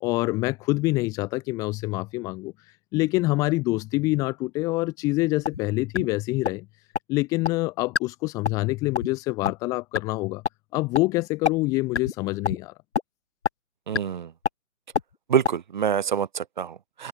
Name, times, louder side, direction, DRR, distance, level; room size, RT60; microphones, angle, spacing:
voice 1, 0.0-2.5 2.9-6.6 7.1-10.4 10.7-12.7, left 22 dB, 10° left, 1.2 m, -26 dB
sound 1, 5.5-5.6 5.9-6.0 6.4-6.5 6.9-7.0 7.4-7.5 7.9-8.0 8.4-8.6 8.9-9.1 9.4-9.5 9.9-10.0 10.4-10.5 10.9-11.0 11.4-11.5 11.9-12.1 12.4-12.6 12.9-13.0 13.4-13.5 13.9-14.0 14.4-14.5 14.9-15.0 15.4-15.5, left 6 dB, 55° left, 1.0 m, -24 dB
voice 2, 13.9-14.3 15.3-17.1, right 8 dB, 35° right, 1.8 m, -26 dB
open air
figure-of-eight pair, 145°, 41 cm